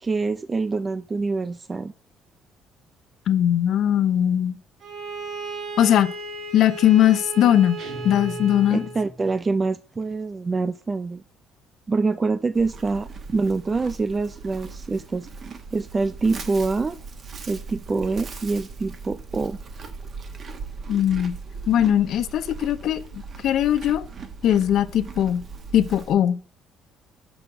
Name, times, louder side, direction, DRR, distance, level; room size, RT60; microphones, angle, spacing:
voice 1, 0.0-1.9 8.7-11.2 11.9-15.3 15.7-17.0 17.5-19.6, right 3 dB, 25° right, 0.4 m, -25 dB
voice 2, 3.3-4.6 5.8-6.1 6.5-7.8 8.0-8.9 20.9-21.3 21.7-23.0 23.4-24.1 24.4-25.4 25.7-26.4, left 11 dB, 65° left, 0.6 m, -19 dB
Bowed string instrument, 4.8-9.0, right 3 dB, 60° right, 2.1 m, -35 dB
sound 1, 7.8-9.5, right 1 dB, 80° right, 2.4 m, -39 dB
Livestock farm animals working animals, 12.5-26.2, right 4 dB, 40° right, 1.2 m, -39 dB
6.2 x 6.2 x 5.0 m
cardioid pair, 120°, 0 cm